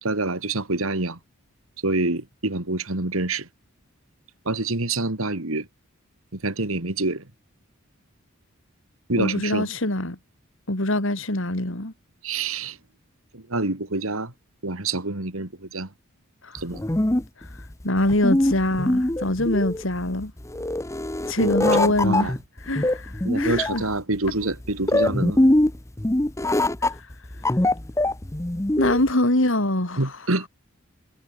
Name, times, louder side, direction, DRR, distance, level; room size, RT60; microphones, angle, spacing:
voice 1, 0.0-1.2 1.8-3.5 4.5-5.7 6.3-7.2 9.1-9.7 12.2-12.8 13.3-14.3 14.6-15.9 16.5-16.8 21.4-21.7 22.0-22.3 23.2-25.5 30.0-30.5, right 2 dB, 75° right, 2.6 m, -27 dB
voice 2, 9.2-10.2 10.7-11.9 16.4-16.6 17.4-20.3 21.3-23.9 26.8-27.1 28.8-30.3, left 1 dB, 65° left, 3.0 m, -24 dB
sound 1, 16.6-29.1, left 1 dB, 15° left, 0.7 m, -23 dB
head